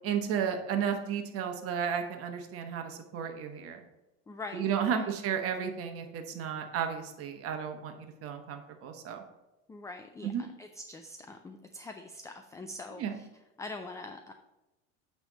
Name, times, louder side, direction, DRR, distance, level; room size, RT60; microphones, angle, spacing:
voice 1, 0.0-3.8 4.5-9.2 10.2-10.4 13.0-13.2, right 7 dB, 50° right, 5 dB, 1.1 m, -33 dB
voice 2, 4.3-5.1 9.7-13.3 13.6-14.3, left 2 dB, 10° left, 6 dB, 0.3 m, -44 dB
8.8 x 3.4 x 5.5 m, 1.0 s
supercardioid pair, 125°, 30 cm